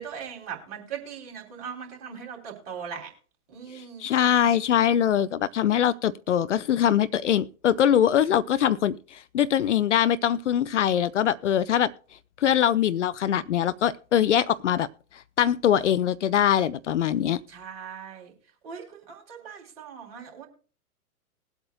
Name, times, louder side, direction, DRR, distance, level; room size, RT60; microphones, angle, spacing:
voice 1, 0.0-3.1 3.5-4.1 17.5-18.3 18.6-20.5, right 7 dB, 40° right, 3.3 m, -39 dB
voice 2, 3.7-11.9 12.4-14.9 15.1-17.4, left 10 dB, 55° left, 0.6 m, -23 dB
21.0 x 8.0 x 2.3 m
figure-of-eight pair, 110°, 44 cm